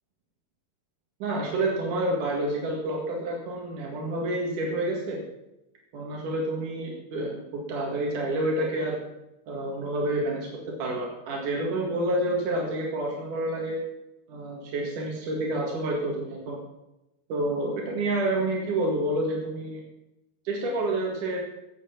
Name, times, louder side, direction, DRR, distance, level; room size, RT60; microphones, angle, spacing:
voice 1, 1.2-5.2 5.9-9.0 9.5-10.5 10.8-13.8 14.3-16.6 17.3-19.8 20.4-21.4, right 1 dB, 80° right, -1 dB, 3.4 m, -28 dB
16.0 x 9.1 x 5.8 m, 0.95 s
omnidirectional pair, 3.5 m